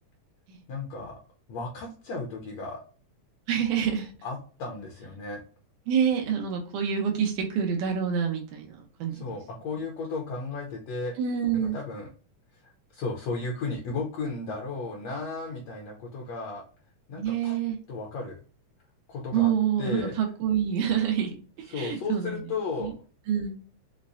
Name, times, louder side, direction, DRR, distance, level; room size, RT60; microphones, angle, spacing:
voice 1, 0.7-1.2 1.5-2.8 4.2-5.4 9.1-11.2 11.5-12.1 12.6-16.6 17.1-17.6 17.9-18.4 19.1-19.5 19.8-20.2 21.7-22.9, left 3 dB, 70° left, 1 dB, 1.6 m, -34 dB
voice 2, 3.5-4.1 5.9-9.4 11.2-11.8 17.1-17.8 19.3-21.3 21.7-22.4 22.8-22.9 23.3-23.6, right 8 dB, 85° right, 2 dB, 2.3 m, -27 dB
5.7 x 2.1 x 2.5 m, 0.38 s
omnidirectional pair, 3.5 m